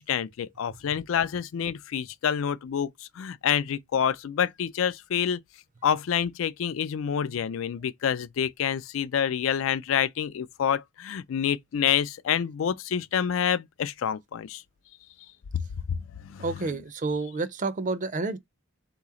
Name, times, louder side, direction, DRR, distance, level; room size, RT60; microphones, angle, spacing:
voice 1, 0.0-2.9 3.2-5.4 5.8-14.6 15.5-15.6 15.9-16.4, left 8 dB, 75° left, 0.4 m, -27 dB
voice 2, 16.4-18.4, right 3 dB, 40° right, 0.5 m, -29 dB
4.0 x 2.9 x 3.6 m
head